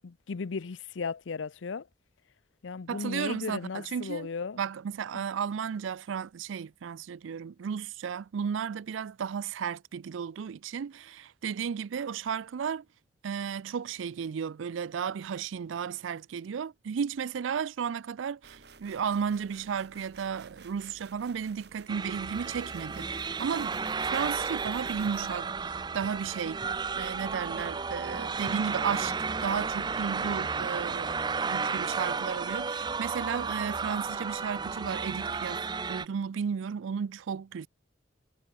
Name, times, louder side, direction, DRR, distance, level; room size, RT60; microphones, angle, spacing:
voice 1, 0.0-1.9 2.6-4.6 5.1-5.2, left 5 dB, 80° left, 0.6 m, -36 dB
voice 2, 2.9-4.3 4.6-12.8 13.2-26.6 27.0-37.7, right 7 dB, 85° right, 0.4 m, -34 dB
sound 1, 18.4-21.9 22.3-25.3, right 4 dB, 55° right, 1.7 m, -53 dB
sound 2, 21.9-36.1, right 5 dB, 20° right, 0.4 m, -33 dB
sound 3, 25.4-25.6 26.0-26.7 27.3-27.4 28.5-30.2 30.6-30.7, equal, 5° right, 4.2 m, -55 dB
head